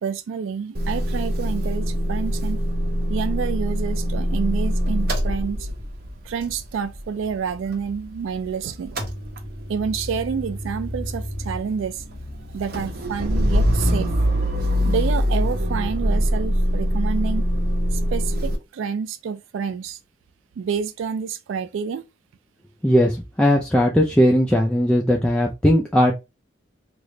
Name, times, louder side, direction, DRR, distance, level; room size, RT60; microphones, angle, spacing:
voice 1, 0.0-2.6 3.1-5.7 6.2-9.0 9.7-12.0 12.5-14.2 14.8-17.4 17.9-20.0 20.6-22.0, right 6 dB, 80° right, 0.3 m, -28 dB
Motor vehicle (road) / Engine starting / Idling, 0.7-8.5 8.7-18.6, equal, 50° right, 0.7 m, -24 dB
voice 2, 22.8-26.1, equal, 5° left, 0.3 m, -18 dB
3.2 x 2.1 x 3.7 m
head